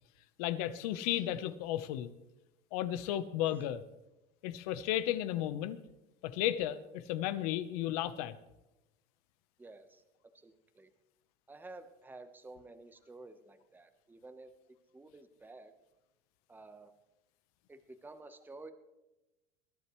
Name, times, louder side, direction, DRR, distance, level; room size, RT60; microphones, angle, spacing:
voice 1, 0.4-2.1 2.7-3.8 4.4-5.8 6.2-8.4, left 12 dB, 85° left, 13 dB, 1.0 m, -34 dB
voice 2, 9.6-10.0 10.4-10.9 11.5-14.5 14.9-15.7 16.5-16.9 17.7-18.7, right 2 dB, 10° right, 8 dB, 1.1 m, -52 dB
21.5 x 12.0 x 3.2 m, 0.97 s
supercardioid pair, 115°, 19 cm